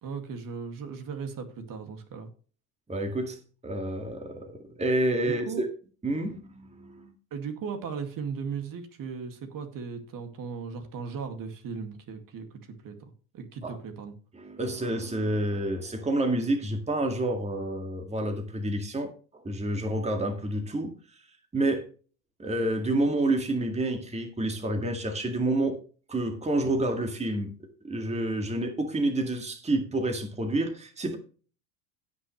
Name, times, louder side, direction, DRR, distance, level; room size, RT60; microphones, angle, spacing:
voice 1, 0.0-2.3 5.1-5.7 7.3-14.1, right 5 dB, 45° right, 2.2 m, -37 dB
voice 2, 2.9-3.4 3.6-5.7 6.0-7.1 13.6-13.8 14.4-20.9 21.5-21.9 22.4-25.8 26.1-27.5 27.8-31.2, right 1 dB, 15° right, 2.0 m, -29 dB
17.0 x 6.0 x 3.2 m
supercardioid pair, 95°, 46 cm